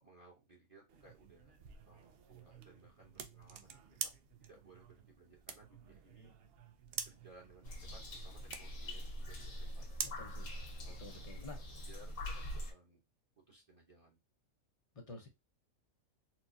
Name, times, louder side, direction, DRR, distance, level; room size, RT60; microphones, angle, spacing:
voice 1, 0.0-1.6 1.9-4.1 4.4-6.3 7.0-9.8 10.8-11.1 11.8-13.0 13.5-14.2, right 2 dB, 25° right, -2 dB, 1.1 m, -61 dB
sound 1, 0.9-11.3, right 7 dB, 65° right, 0.6 m, -49 dB
sound 2, 7.6-12.7, equal, 75° left, 1.7 m, -44 dB
voice 2, 10.0-10.5 11.0-11.6 14.9-15.3, left 3 dB, 35° left, 3 dB, 0.6 m, -50 dB
4.3 x 2.3 x 2.6 m, 0.22 s
omnidirectional pair, 1.5 m